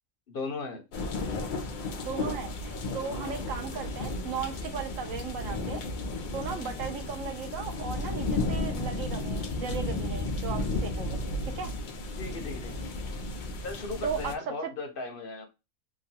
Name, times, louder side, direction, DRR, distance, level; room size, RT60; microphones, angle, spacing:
voice 1, 0.3-0.8 3.1-3.2 12.2-12.8 13.6-15.5, left 3 dB, 50° left, 0.7 m, -37 dB
sound 1, 0.9-14.4, left 2 dB, 90° left, 0.4 m, -33 dB
voice 2, 2.0-5.8 6.3-11.7 14.0-14.7, right 6 dB, 70° right, 1.0 m, -37 dB
3.0 x 2.3 x 2.7 m
omnidirectional pair, 1.5 m